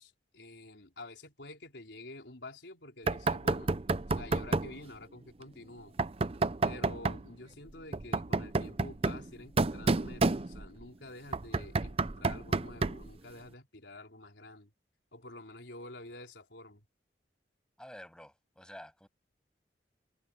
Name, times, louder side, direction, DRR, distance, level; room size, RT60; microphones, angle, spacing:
voice 1, 0.0-3.7 4.1-5.9 6.6-14.7 15.1-16.8, left 2 dB, 80° left, 4.2 m, -49 dB
Knock, 3.1-4.8 6.0-7.3 7.9-10.8 11.3-13.1, right 3 dB, 35° right, 0.6 m, -30 dB
voice 2, 17.8-19.1, equal, 5° left, 7.5 m, -50 dB
head